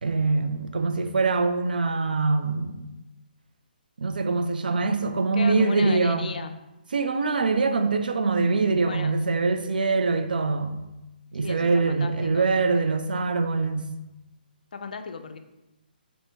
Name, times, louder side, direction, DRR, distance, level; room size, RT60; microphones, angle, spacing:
voice 1, 0.0-2.9 4.0-6.3 6.9-10.9 11.3-13.9, right 3 dB, 60° right, 0.4 m, -24 dB
voice 2, 5.3-6.5 8.8-9.1 11.4-12.9 14.7-15.4, left 5 dB, 55° left, 0.4 m, -36 dB
4.2 x 2.7 x 3.4 m
figure-of-eight pair, 135°, 5 cm